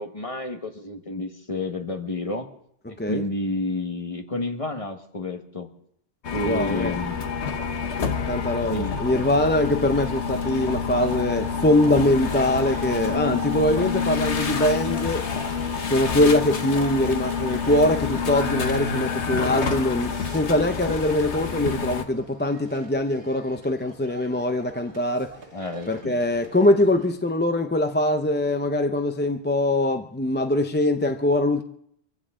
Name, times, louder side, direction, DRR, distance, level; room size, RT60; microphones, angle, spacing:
voice 1, 0.0-2.5 3.1-5.7 6.3-7.3 8.7-9.0 9.8-9.9 25.5-26.2, left 2 dB, 30° left, 1.5 m, -30 dB
voice 2, 2.9-3.3 6.4-6.9 8.3-15.3 15.8-25.4 25.9-31.6, left 1 dB, 15° left, 0.5 m, -23 dB
sound 1, 6.2-22.0, left 5 dB, 80° left, 1.5 m, -28 dB
sound 2, 11.1-27.1, right 2 dB, 85° right, 1.9 m, -44 dB
25.0 x 15.5 x 3.7 m
omnidirectional pair, 1.1 m